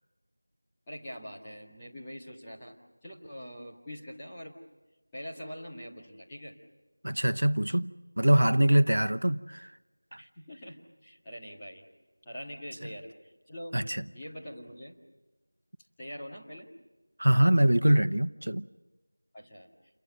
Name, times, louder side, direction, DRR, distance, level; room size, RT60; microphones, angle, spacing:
voice 1, 0.9-2.8 3.0-4.6 5.1-6.5 10.2-11.8 12.2-13.8 14.1-15.0 16.0-16.7 19.3-19.7, equal, 5° left, 1.9 m, -44 dB
voice 2, 7.0-7.9 8.2-9.7 10.1-10.2 13.7-14.0 17.2-18.7, right 1 dB, 85° right, 0.9 m, -23 dB
29.5 x 23.5 x 6.6 m
figure-of-eight pair, 180°, 0 cm